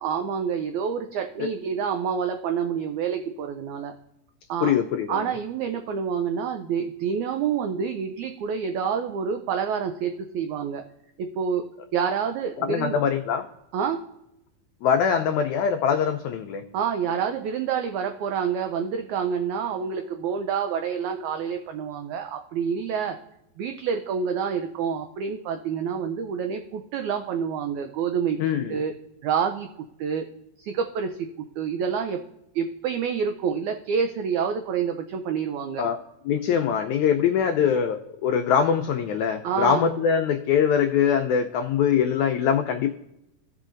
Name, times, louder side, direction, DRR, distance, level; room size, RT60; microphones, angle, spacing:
voice 1, 0.0-3.9 4.5-4.7 5.1-10.8 11.2-11.6 11.9-13.0 13.7-14.0 16.7-23.2 23.6-28.4 28.7-28.9 29.2-29.7 30.0-30.2 30.6-31.2 31.6-32.2 32.6-35.8 39.4-39.9, right 7 dB, 90° right, 6 dB, 1.6 m, -27 dB
voice 2, 4.6-5.3 12.6-13.5 14.8-16.6 28.4-28.8 35.8-36.0 36.3-42.9, left 7 dB, 85° left, 4 dB, 1.6 m, -23 dB
16.0 x 5.7 x 2.5 m, 0.85 s
omnidirectional pair, 4.0 m